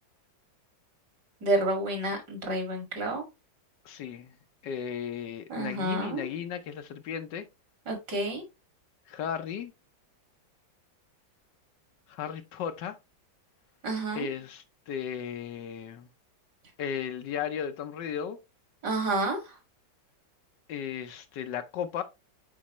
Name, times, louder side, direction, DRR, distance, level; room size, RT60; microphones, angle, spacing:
voice 1, 1.4-3.2 5.5-6.3 7.9-8.4 13.8-14.3 18.8-19.6, right 2 dB, 55° right, 2.6 m, -29 dB
voice 2, 3.8-4.3 4.6-7.5 9.1-9.7 12.1-13.0 14.1-16.1 16.8-18.4 20.7-22.0, left 8 dB, 70° left, 1.2 m, -35 dB
7.3 x 4.8 x 2.9 m
omnidirectional pair, 2.1 m